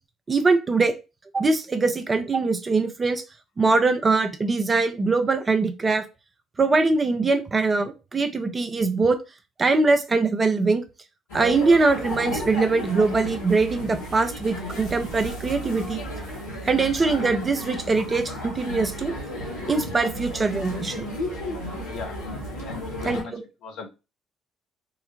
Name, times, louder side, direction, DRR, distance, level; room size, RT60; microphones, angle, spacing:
voice 1, 0.3-0.9 1.3-3.2 3.6-6.0 6.6-9.2 9.6-10.8 11.3-16.0 16.6-19.1 19.7-21.0 23.0-23.4, right 3 dB, 30° right, 7 dB, 0.7 m, -22 dB
sound 1, 11.3-23.2, equal, 80° left, 1.4 m, -33 dB
voice 2, 22.6-23.3 23.6-23.9, left 5 dB, 65° left, 3 dB, 0.8 m, -37 dB
3.7 x 2.2 x 3.1 m, 0.28 s
hypercardioid pair, 50°, 0 cm